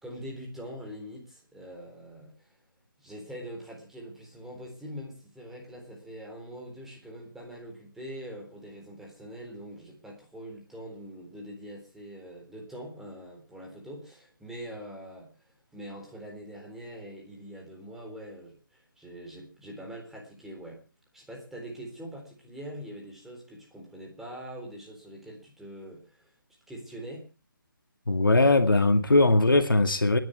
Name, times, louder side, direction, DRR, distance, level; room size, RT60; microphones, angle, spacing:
voice 1, 0.0-2.6 3.0-20.8 21.1-26.3 26.7-27.3, equal, 5° right, 3.8 m, -43 dB
voice 2, 28.1-30.2, left 2 dB, 75° left, 2.1 m, -20 dB
29.0 x 11.0 x 3.4 m
figure-of-eight pair, 150°, 11 cm